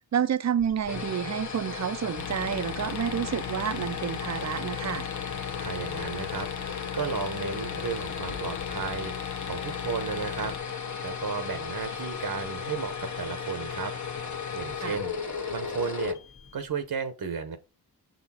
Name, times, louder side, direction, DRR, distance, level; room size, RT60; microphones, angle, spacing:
voice 1, 0.1-5.1 14.8-15.0, right 9 dB, 45° right, 0.5 m, -29 dB
sound 1, 0.6-16.8, left 6 dB, 45° left, 1.1 m, -35 dB
sound 2, 2.2-10.6, left 9 dB, 70° left, 0.8 m, -39 dB
voice 2, 5.6-6.7 6.9-9.1 9.4-13.9 14.5-15.1 15.5-16.2 16.5-17.6, right 6 dB, 65° right, 1.0 m, -34 dB
6.6 x 4.2 x 4.3 m
cardioid pair, 55°, 39 cm